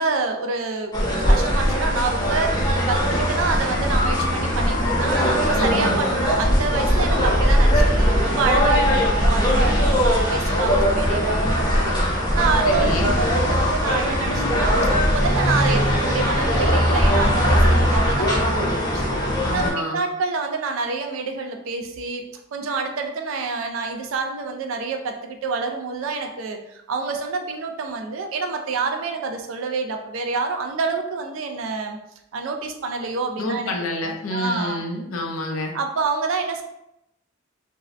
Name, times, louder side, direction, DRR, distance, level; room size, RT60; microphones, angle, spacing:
voice 1, 0.0-2.5 2.9-11.9 12.3-19.1 19.5-32.0 32.3-33.7 34.0-34.8 35.7-36.6, right 4 dB, 80° right, 4 dB, 0.4 m, -27 dB
sound 1, 0.9-19.7, equal, 20° left, 0.6 m, -20 dB
voice 2, 5.5-6.0 12.6-13.1 19.4-20.0 33.4-35.7, left 1 dB, 90° left, 2 dB, 0.5 m, -28 dB
2.6 x 2.0 x 2.4 m, 0.84 s
head